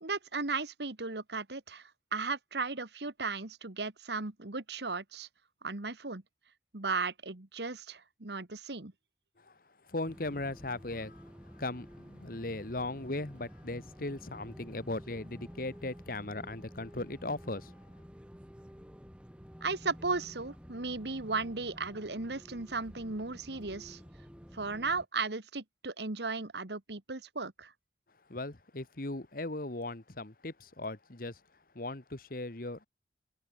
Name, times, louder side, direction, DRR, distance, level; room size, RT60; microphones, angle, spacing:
voice 1, 0.0-5.3 5.6-6.2 6.7-8.9 19.6-24.0 24.5-27.7, right 4 dB, 70° right, 1.8 m, -36 dB
voice 2, 9.8-17.7 28.3-31.4 31.7-32.9, left 2 dB, 55° left, 1.6 m, -38 dB
sound 1, 10.0-25.1, equal, 5° right, 2.8 m, -51 dB
head